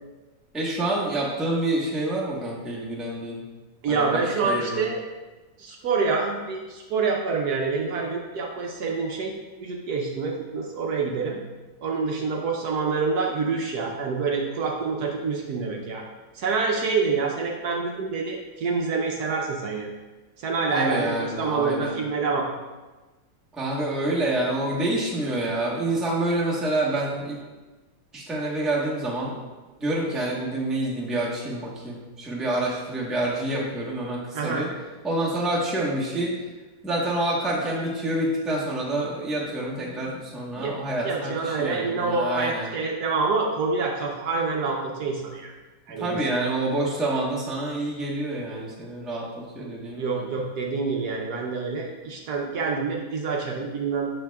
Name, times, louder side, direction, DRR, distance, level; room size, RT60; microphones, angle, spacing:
voice 1, 0.5-3.4 3.9-4.9 20.7-21.9 23.5-27.4 28.1-29.4 29.8-34.7 35.0-36.3 36.8-42.7 46.0-50.2, right 1 dB, ahead, -5 dB, 0.8 m, -27 dB
voice 2, 3.8-5.1 5.6-9.3 9.6-11.4 11.8-16.0 16.3-19.9 20.4-22.5 34.3-34.7 40.6-40.7 41.0-45.5 45.9-46.5 50.0-54.1, right 4 dB, 65° right, 0 dB, 1.2 m, -27 dB
7.6 x 6.4 x 2.3 m, 1.2 s
omnidirectional pair, 2.0 m